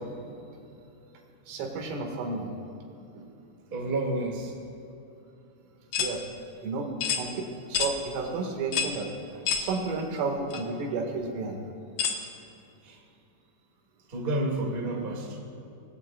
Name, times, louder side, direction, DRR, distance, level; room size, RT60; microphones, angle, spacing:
voice 1, 1.5-2.5 3.2-3.3 6.0-6.2 6.6-9.1 9.6-11.6, right 3 dB, 90° right, 1 dB, 4.6 m, -32 dB
voice 2, 3.7-4.5 9.3-9.4 12.8-13.0 14.1-15.4, right 2 dB, 75° right, -1 dB, 0.5 m, -30 dB
sound 1, 5.9-6.1 7.0-7.2 7.7-7.9 8.7-9.0 9.5-9.7 10.5-10.6 12.0-12.2, left 7 dB, 80° left, 1.8 m, -27 dB
25.0 x 20.0 x 2.4 m, 2.7 s
omnidirectional pair, 5.6 m